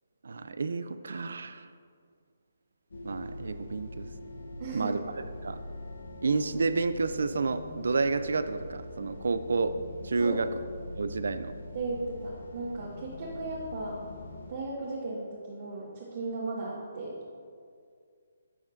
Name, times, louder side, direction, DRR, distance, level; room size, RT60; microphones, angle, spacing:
voice 1, 0.2-1.7 3.0-4.1 4.7-5.0 5.4-5.6 6.2-9.7 10.0-10.5 10.9-11.5, right 4 dB, 75° right, 11 dB, 0.5 m, -30 dB
sound 1, 2.9-14.5, left 1 dB, 85° left, 1.3 m, -43 dB
voice 2, 4.6-4.9 10.2-10.4 11.7-14.0 14.5-17.2, right 2 dB, 50° right, -6 dB, 1.7 m, -36 dB
11.5 x 7.2 x 2.6 m, 2.2 s
hypercardioid pair, 155°, 0 cm